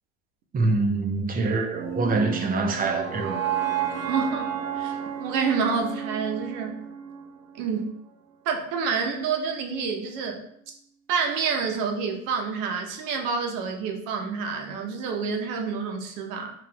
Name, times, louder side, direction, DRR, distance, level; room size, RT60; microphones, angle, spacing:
voice 1, 0.5-3.4, right 3 dB, 20° right, 0.6 m, -25 dB
sound 1, 1.7-7.8, right 8 dB, 85° right, 0.7 m, -31 dB
voice 2, 4.0-6.8 7.6-8.0 8.4-10.4 11.1-16.5, right 5 dB, 55° right, 0.9 m, -28 dB
5.9 x 2.4 x 2.3 m
hypercardioid pair, 90°, 39 cm